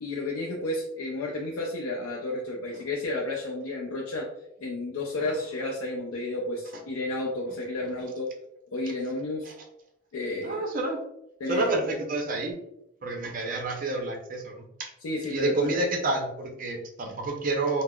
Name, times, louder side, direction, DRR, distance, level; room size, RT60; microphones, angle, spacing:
voice 1, 0.0-4.3 4.6-8.3 8.7-9.5 10.1-10.6 11.4-11.7 15.0-15.7, left 2 dB, 90° left, -1 dB, 0.4 m, -31 dB
voice 2, 10.4-11.0 11.5-12.5 13.0-14.9 15.3-17.8, right 2 dB, 40° right, 2 dB, 0.5 m, -29 dB
3.5 x 2.0 x 2.2 m, 0.81 s
head